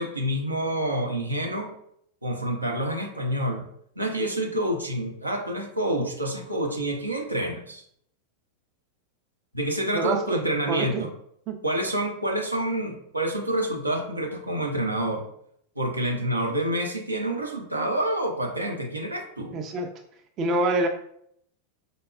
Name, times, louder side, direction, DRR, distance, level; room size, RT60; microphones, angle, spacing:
voice 1, 0.0-1.7 2.2-3.6 4.0-7.8 9.5-11.1 11.6-15.3 15.8-19.6, right 1 dB, 85° right, 1 dB, 0.6 m, -28 dB
voice 2, 9.9-10.4 10.7-11.1 11.5-11.6 19.5-19.9 20.4-20.9, right 2 dB, 30° right, 4 dB, 0.4 m, -26 dB
5.1 x 2.2 x 2.3 m, 0.68 s
figure-of-eight pair, 90°, 0 cm